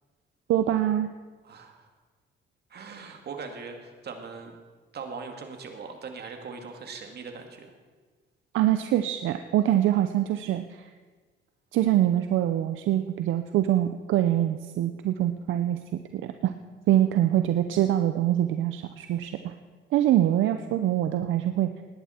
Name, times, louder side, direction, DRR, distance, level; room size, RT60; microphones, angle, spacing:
voice 1, 0.5-1.1 8.5-10.9 11.7-16.5 16.9-19.5 19.9-21.7, right 12 dB, 80° right, 8 dB, 0.6 m, -24 dB
voice 2, 1.4-1.9 2.7-4.6 4.9-7.7, right 5 dB, 55° right, 4 dB, 2.1 m, -40 dB
18.0 x 10.5 x 4.4 m, 1.4 s
cardioid pair, 90°, 20 cm